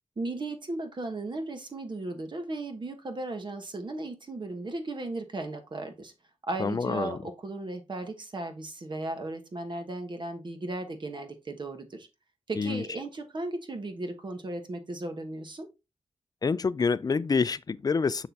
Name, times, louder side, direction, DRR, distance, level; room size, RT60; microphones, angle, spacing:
voice 1, 0.2-6.1 6.4-12.1 12.5-15.7, right 2 dB, 45° right, 1.2 m, -36 dB
voice 2, 6.6-7.2 12.6-12.8 16.4-18.3, left 5 dB, 35° left, 0.4 m, -27 dB
6.5 x 6.1 x 2.8 m
wide cardioid pair, 100°, 11 cm